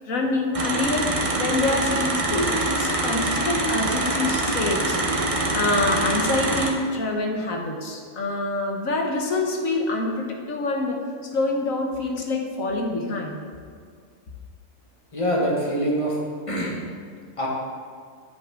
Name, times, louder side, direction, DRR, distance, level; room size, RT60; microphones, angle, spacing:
voice 1, 0.0-11.0 11.3-13.4, left 2 dB, 75° left, 2 dB, 1.6 m, -26 dB
sound 1, 0.5-6.7, right 2 dB, 30° right, 0.9 m, -24 dB
voice 2, 15.1-16.2 16.5-16.8 17.4-17.5, equal, 25° left, -3 dB, 1.8 m, -24 dB
10.5 x 8.5 x 3.8 m, 2.1 s
omnidirectional pair, 1.4 m